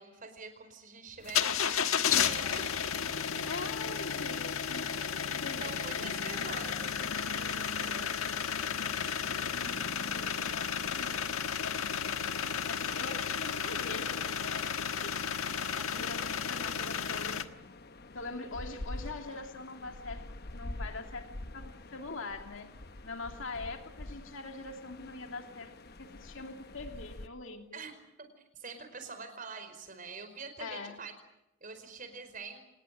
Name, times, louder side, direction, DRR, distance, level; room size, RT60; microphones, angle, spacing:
voice 1, 0.0-3.1 5.6-8.1 8.4-9.3 27.7-31.1 31.6-32.6, right 4 dB, 40° right, 8 dB, 4.9 m, -46 dB
sound 1, 1.2-17.4, left 7 dB, 85° left, 1.4 m, -33 dB
voice 2, 3.4-6.1 9.5-11.3 11.5-15.2 15.6-17.6 18.1-22.7 23.0-27.8 30.6-31.0, left 3 dB, 65° left, 4 dB, 2.8 m, -43 dB
sound 2, 9.2-27.3, left 2 dB, 50° left, 1.0 m, -47 dB
26.5 x 20.0 x 9.0 m, 0.89 s
head